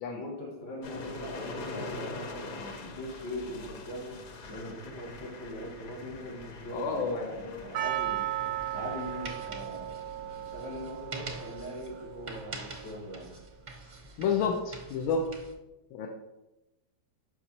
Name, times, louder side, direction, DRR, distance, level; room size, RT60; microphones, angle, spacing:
voice 1, 0.1-4.2 4.5-8.3 8.7-9.9 10.4-13.3, equal, 70° left, -4 dB, 3.4 m, -41 dB
sound 1, 0.8-12.6, left 3 dB, 55° left, 1.2 m, -44 dB
voice 2, 6.7-7.6 14.2-15.2 15.9-16.1, left 5 dB, 85° left, 1 dB, 1.6 m, -30 dB
Percussion, 7.7-12.7, right 13 dB, 90° right, 1.4 m, -36 dB
sound 2, 8.4-15.5, right 3 dB, 50° right, 0.5 m, -45 dB
12.5 x 5.0 x 2.9 m, 0.97 s
omnidirectional pair, 2.1 m